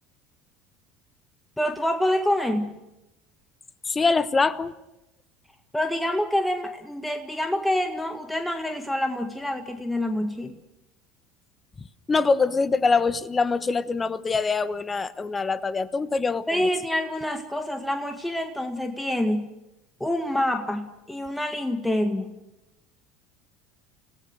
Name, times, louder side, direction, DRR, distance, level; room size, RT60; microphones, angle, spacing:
voice 1, 1.6-2.8 5.7-10.6 16.5-19.5 20.0-22.4, left 1 dB, 5° left, 6 dB, 1.8 m, -27 dB
voice 2, 3.8-4.7 12.1-16.7, left 4 dB, 25° left, 15 dB, 1.2 m, -24 dB
30.0 x 17.0 x 6.5 m, 0.96 s
hypercardioid pair, 70°, 0 cm